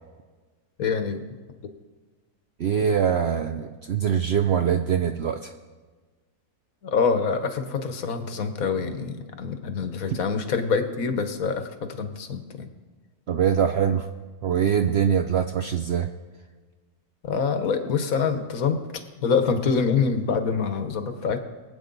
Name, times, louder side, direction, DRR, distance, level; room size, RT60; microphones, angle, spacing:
voice 1, 0.8-1.3 1.6-1.7 6.8-12.7 17.2-18.8 19.2-21.4, left 5 dB, 65° left, 8 dB, 1.4 m, -25 dB
voice 2, 2.6-5.5 13.3-14.1 14.4-16.1, right 8 dB, 65° right, 6 dB, 0.6 m, -23 dB
22.5 x 8.2 x 3.9 m, 1.4 s
omnidirectional pair, 1.6 m